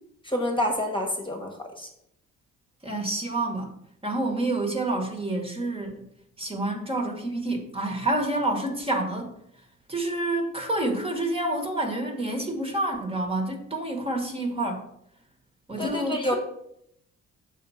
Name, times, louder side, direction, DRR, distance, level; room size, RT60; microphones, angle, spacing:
voice 1, 0.2-1.9 15.8-16.4, left 1 dB, 15° left, 2 dB, 1.3 m, -28 dB
voice 2, 2.8-3.7 4.0-6.0 6.4-9.3 9.9-14.8 15.7-16.4, right 2 dB, 20° right, 2 dB, 1.4 m, -28 dB
6.8 x 3.7 x 5.6 m, 0.75 s
cardioid pair, 90°, 30 cm